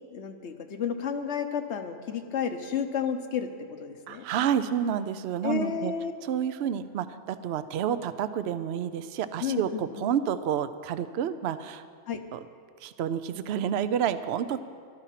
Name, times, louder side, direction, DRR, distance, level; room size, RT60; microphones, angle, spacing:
voice 1, 0.1-3.5 3.8-4.2 5.4-6.1 9.4-10.1 12.1-12.2, left 7 dB, 65° left, 7 dB, 1.1 m, -31 dB
voice 2, 4.1-5.9 6.3-11.8 12.3-12.4 12.8-14.6, right 9 dB, 60° right, 12 dB, 0.8 m, -29 dB
14.5 x 12.5 x 5.8 m, 2.1 s
omnidirectional pair, 1.3 m